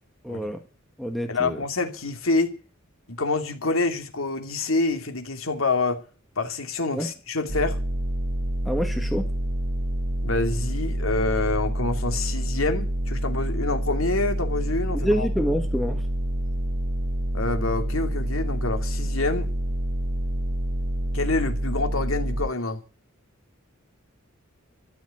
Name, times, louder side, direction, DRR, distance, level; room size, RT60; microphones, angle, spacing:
voice 1, 0.2-0.6 1.0-1.6 6.9-7.1 8.6-9.3 14.9-16.0, equal, ahead, 1.8 m, -27 dB
voice 2, 1.3-2.6 3.2-6.0 6.4-7.8 10.2-15.3 17.3-19.5 21.1-22.8, left 3 dB, 85° left, 2.7 m, -27 dB
sound 1, 7.5-22.5, right 1 dB, 65° right, 1.2 m, -27 dB
13.5 x 7.5 x 9.8 m
head